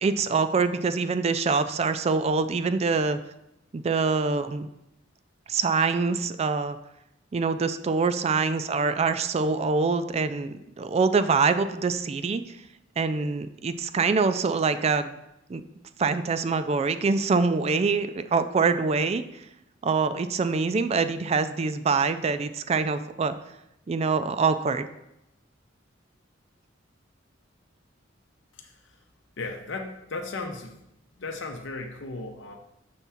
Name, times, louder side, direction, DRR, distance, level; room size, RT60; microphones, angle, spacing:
voice 1, 0.0-3.2 3.7-4.7 5.5-6.8 7.3-12.4 13.0-15.2 15.5-15.6 16.0-19.2 19.8-23.4 23.9-24.9, right 4 dB, 35° right, 11 dB, 0.3 m, -25 dB
voice 2, 28.5-29.0 29.4-30.8 31.2-32.5, left 3 dB, 70° left, 3 dB, 0.8 m, -36 dB
6.9 x 3.6 x 5.7 m, 0.85 s
head